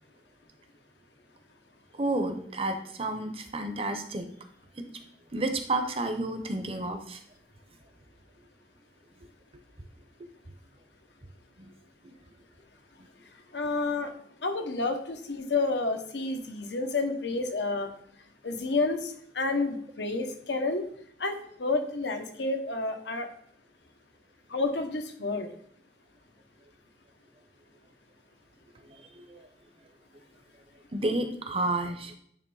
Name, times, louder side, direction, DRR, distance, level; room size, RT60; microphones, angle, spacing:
voice 1, 2.0-4.3 4.8-4.9 5.3-7.2 11.6-11.7 12.0-12.1 28.9-29.4 30.9-32.1, right 2 dB, 30° right, 6 dB, 0.7 m, -31 dB
voice 2, 13.5-14.1 14.4-17.9 18.4-20.9 21.2-23.3 24.5-25.5, left 3 dB, 75° left, 6 dB, 0.9 m, -30 dB
9.1 x 3.1 x 4.7 m, 0.66 s
head